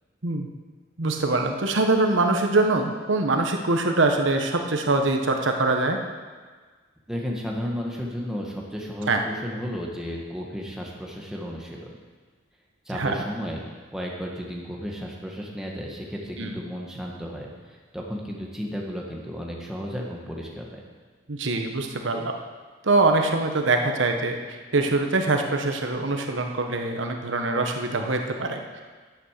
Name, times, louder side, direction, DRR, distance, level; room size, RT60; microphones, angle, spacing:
voice 1, 1.0-6.0 9.1-9.2 12.9-13.1 16.4-16.5 21.3-22.3 22.8-28.6, right 2 dB, 80° right, 4 dB, 1.1 m, -23 dB
voice 2, 7.1-11.9 12.9-13.6 13.9-17.5 17.9-20.8, equal, 5° right, -2 dB, 1.7 m, -33 dB
10.5 x 8.2 x 6.6 m, 1.5 s
head